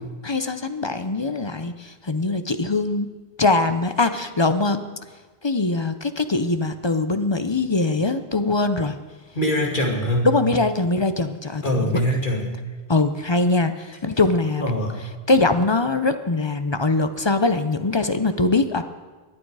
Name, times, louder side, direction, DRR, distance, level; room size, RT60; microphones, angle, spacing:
voice 1, 0.0-3.1 3.4-4.8 5.4-9.0 10.2-12.1 12.9-14.7 15.3-18.8, left 3 dB, 30° left, 9 dB, 0.6 m, -22 dB
voice 2, 9.3-10.3 11.6-12.5 14.6-15.0, equal, 55° left, -1 dB, 2.5 m, -23 dB
22.5 x 8.9 x 4.8 m, 1.3 s
omnidirectional pair, 1.0 m